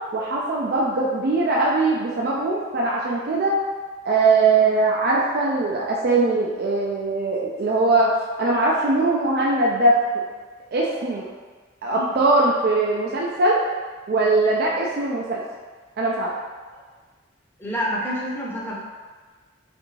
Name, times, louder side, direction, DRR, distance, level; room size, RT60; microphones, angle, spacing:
voice 1, 0.1-3.6 4.0-10.0 10.7-11.3 11.8-13.6 14.1-15.4 16.0-16.3, right 2 dB, 55° right, -3 dB, 0.3 m, -21 dB
voice 2, 17.6-18.8, equal, 10° left, -5 dB, 0.6 m, -28 dB
3.4 x 2.5 x 3.1 m, 1.4 s
head